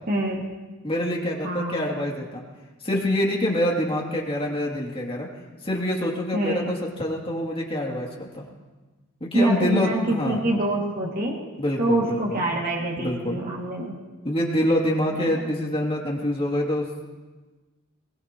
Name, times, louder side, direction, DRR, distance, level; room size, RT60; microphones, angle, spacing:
voice 1, 0.1-0.4 1.4-1.8 6.3-6.7 9.3-11.4 11.8-13.9 15.3-15.4, right 1 dB, 45° right, -2 dB, 2.4 m, -25 dB
voice 2, 0.8-2.4 2.8-5.3 5.6-8.4 9.2-10.4 11.6-12.4 12.9-13.4 14.2-16.9, left 1 dB, 25° left, -2 dB, 2.9 m, -26 dB
21.5 x 21.5 x 3.1 m, 1.2 s
head